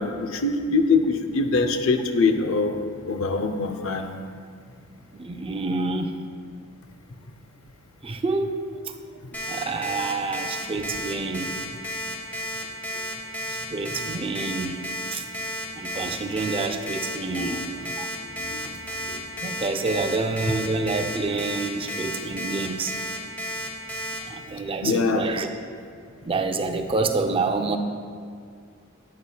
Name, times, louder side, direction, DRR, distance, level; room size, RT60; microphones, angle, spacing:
voice 1, 0.0-2.7 3.1-4.1 17.3-17.6 24.8-25.3, left 3 dB, 70° left, 6 dB, 0.6 m, -23 dB
voice 2, 5.1-6.1 8.0-8.8 9.5-11.6 13.5-14.8 15.1-15.3 15.8-18.1 18.6-18.7 19.4-23.0 24.3-25.5 26.2-27.8, right 3 dB, 25° right, 5 dB, 0.4 m, -28 dB
Alarm, 9.3-24.2, equal, 10° left, 1.0 m, -32 dB
11.0 x 8.5 x 2.3 m, 2.1 s
head